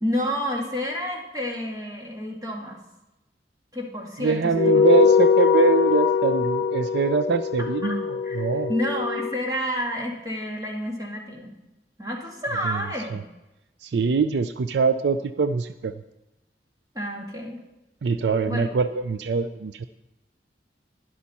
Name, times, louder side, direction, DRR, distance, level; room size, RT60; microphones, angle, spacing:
voice 1, 0.0-2.8 3.7-4.8 7.8-8.0 8.2-11.5 12.0-13.2 16.9-17.6 18.5-18.6, equal, 20° right, -1 dB, 1.9 m, -29 dB
voice 2, 4.2-8.7 12.6-12.8 13.1-13.2 13.8-15.9 18.0-19.8, right 5 dB, 70° right, 12 dB, 0.4 m, -23 dB
sound 1, 4.5-9.3, left 6 dB, 75° left, 0.5 m, -22 dB
11.5 x 11.0 x 4.2 m, 0.98 s
head